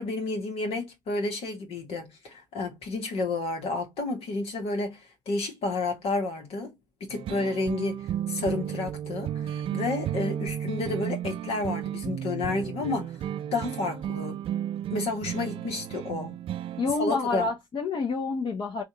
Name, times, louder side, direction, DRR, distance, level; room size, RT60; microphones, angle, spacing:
voice 1, 0.0-6.7 7.0-13.1 13.5-14.4 14.9-16.3 17.0-17.5, left 3 dB, 70° left, 1.4 m, -31 dB
sound 1, 7.1-17.0, right 10 dB, 60° right, 0.4 m, -33 dB
voice 2, 16.8-18.8, left 4 dB, 50° left, 1.1 m, -28 dB
3.9 x 2.6 x 2.9 m
hypercardioid pair, 50°, 10 cm